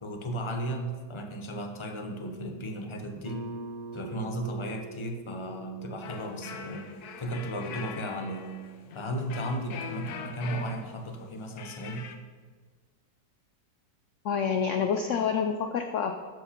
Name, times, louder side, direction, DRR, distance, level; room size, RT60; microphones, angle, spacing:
voice 1, 0.0-3.5 3.9-6.9 7.2-8.6 8.9-12.1, right 1 dB, 45° left, 4 dB, 0.3 m, -35 dB
Guitar, 3.2-8.7, right 2 dB, 35° right, 0.7 m, -44 dB
Electric Guitar Test inside Music Shop, 6.0-12.2, left 6 dB, 65° left, 1.2 m, -42 dB
voice 2, 14.2-16.3, left 6 dB, 85° left, 6 dB, 0.6 m, -28 dB
13.5 x 4.9 x 5.3 m, 1.5 s
omnidirectional pair, 1.9 m